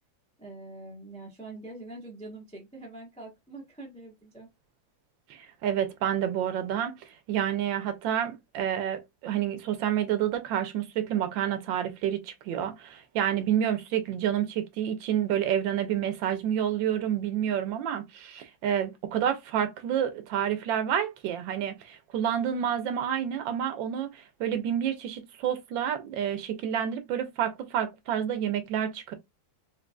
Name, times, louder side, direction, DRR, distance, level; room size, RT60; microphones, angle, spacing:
voice 1, 0.4-4.5, right 2 dB, 10° left, 0.3 m, -44 dB
voice 2, 5.3-29.1, right 9 dB, 75° right, 1.4 m, -29 dB
3.8 x 2.8 x 2.2 m
omnidirectional pair, 2.1 m